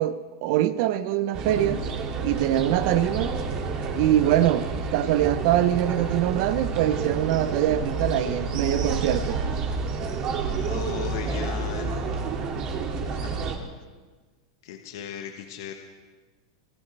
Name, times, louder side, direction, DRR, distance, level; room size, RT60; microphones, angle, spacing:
voice 1, 0.0-1.8 2.2-3.3 3.9-4.7 4.9-9.4, right 12 dB, 60° right, 0.8 m, -23 dB
sound 1, 1.3-13.6, right 4 dB, 40° right, 2.5 m, -29 dB
voice 2, 10.5-12.0 13.1-13.4 14.6-15.7, left 9 dB, 70° left, 1.5 m, -37 dB
25.5 x 15.0 x 3.4 m
supercardioid pair, 130°, 2 cm